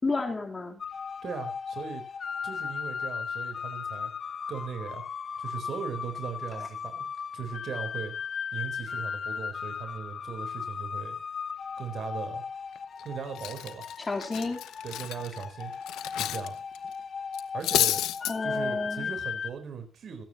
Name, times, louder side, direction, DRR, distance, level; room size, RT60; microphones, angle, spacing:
voice 1, 0.0-0.8 14.0-14.6 18.3-19.1, left 3 dB, 25° left, 2 dB, 3.7 m, -30 dB
sound 1, 0.8-19.5, left 6 dB, 50° left, 1.1 m, -37 dB
voice 2, 1.2-2.0 2.4-4.1 4.5-5.0 5.4-7.1 7.3-8.1 8.5-11.2 11.8-12.4 13.0-13.9 14.8-15.7 16.1-16.6 17.5-18.0 18.4-20.2, right 6 dB, 60° right, 6 dB, 4.1 m, -38 dB
Cutlery silverware, 12.8-13.0 13.4-16.5 16.7-16.9 17.3-18.3, left 13 dB, 90° left, 0.9 m, -30 dB
26.5 x 9.3 x 3.0 m, 0.30 s
cardioid pair, 90°, 0 cm